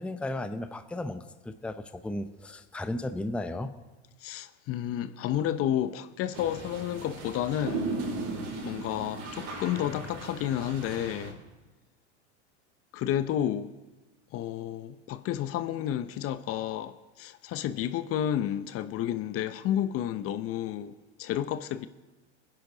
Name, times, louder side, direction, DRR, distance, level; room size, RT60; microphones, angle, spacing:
voice 1, 0.0-3.7, left 1 dB, 5° left, 0.7 m, -35 dB
voice 2, 4.2-7.9 8.6-11.4 12.9-13.7 14.3-21.9, left 11 dB, 40° left, 0.8 m, -31 dB
sound 1, 6.3-11.3, right 3 dB, 55° right, 5.5 m, -37 dB
24.0 x 10.5 x 4.0 m
hypercardioid pair, 95°, 35 cm